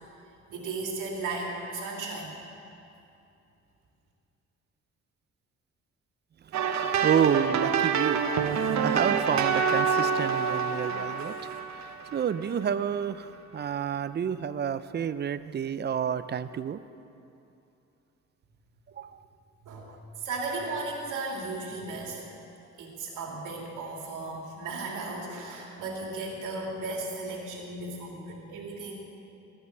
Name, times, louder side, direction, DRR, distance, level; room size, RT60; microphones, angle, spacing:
voice 1, 0.5-2.4 19.6-19.9 20.2-28.9, right 3 dB, 85° right, -1 dB, 2.4 m, -35 dB
voice 2, 6.4-16.8 18.9-19.2, right 8 dB, 35° right, 14 dB, 0.4 m, -30 dB
sound 1, 6.5-12.4, right 6 dB, 65° right, 1.0 m, -27 dB
17.0 x 5.7 x 7.8 m, 2.7 s
cardioid pair, 90°, 30 cm